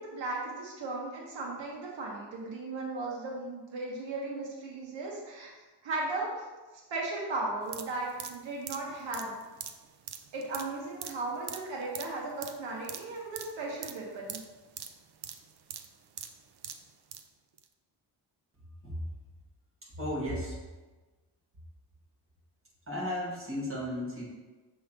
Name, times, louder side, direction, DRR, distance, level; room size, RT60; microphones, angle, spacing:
voice 1, 0.0-5.5 5.8-6.4 6.9-9.4 10.3-14.4, right 2 dB, 85° right, -3 dB, 1.3 m, -36 dB
sound 1, 7.6-17.3 17.6-17.7, right 9 dB, 60° right, 0.6 m, -44 dB
voice 2, 19.8-20.6 22.9-24.3, left 1 dB, 30° right, -6 dB, 2.0 m, -34 dB
7.0 x 3.6 x 4.3 m, 1.3 s
wide cardioid pair, 155°, 44 cm